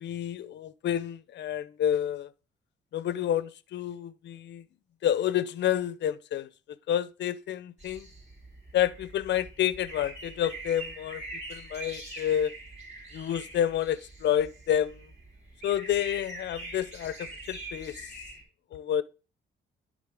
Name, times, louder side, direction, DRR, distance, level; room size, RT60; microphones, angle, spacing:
voice 1, 0.0-2.3 2.9-4.6 5.0-6.5 6.9-8.1 8.7-11.2 11.5-12.5 13.1-15.0 15.6-18.0 18.7-19.0, left 10 dB, 60° left, 0.6 m, -29 dB
sound 1, 7.8-18.4, right 2 dB, 35° right, 3.8 m, -44 dB
10.5 x 3.7 x 4.8 m
cardioid pair, 90°, 20 cm